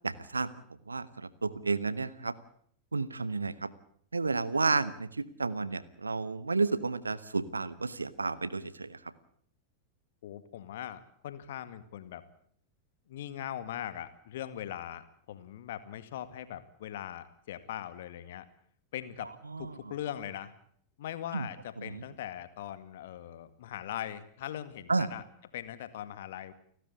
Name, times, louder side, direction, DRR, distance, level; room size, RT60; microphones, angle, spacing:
voice 1, 0.0-0.5 0.9-2.3 2.9-3.7 4.1-5.1 5.4-9.0 19.5-19.7 21.3-21.5 21.8-22.0 24.9-25.1, right 3 dB, 80° right, 17 dB, 1.1 m, -31 dB
voice 2, 10.2-12.2 13.1-18.5 18.9-19.3 19.6-20.5 21.0-25.2 25.5-26.5, left 11 dB, 55° left, 12 dB, 1.9 m, -40 dB
30.0 x 12.5 x 8.4 m, 0.63 s
figure-of-eight pair, 90°, 0 cm